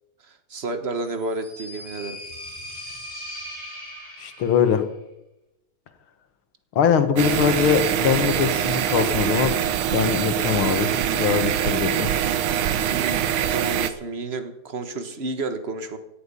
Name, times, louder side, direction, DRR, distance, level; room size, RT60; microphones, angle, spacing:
voice 1, 0.3-2.2 12.9-16.0, right 3 dB, 35° right, 9 dB, 1.4 m, -31 dB
sound 1, 1.0-4.8, left 1 dB, 30° left, 4.3 m, -39 dB
voice 2, 4.2-4.9 6.8-9.6 9.9-12.1, left 7 dB, 85° left, 10 dB, 2.2 m, -22 dB
sound 2, 7.2-13.9, right 10 dB, 80° right, 1.7 m, -23 dB
16.5 x 11.5 x 5.5 m, 0.88 s
omnidirectional pair, 2.2 m